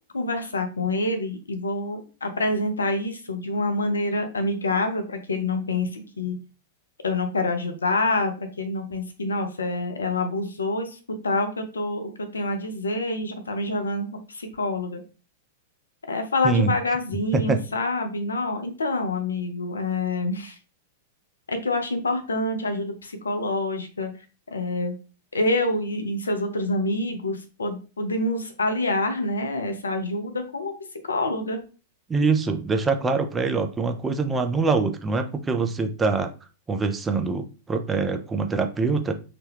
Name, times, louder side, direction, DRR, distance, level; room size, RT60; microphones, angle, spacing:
voice 1, 0.1-6.4 7.0-15.0 16.1-20.6 21.5-24.1 24.5-24.9 25.3-30.7 31.0-31.6, left 2 dB, 90° left, 0.6 m, -27 dB
voice 2, 32.1-36.3 36.7-39.1, right 4 dB, 15° right, 0.5 m, -24 dB
2.9 x 2.2 x 3.4 m
hypercardioid pair, 105°, 0 cm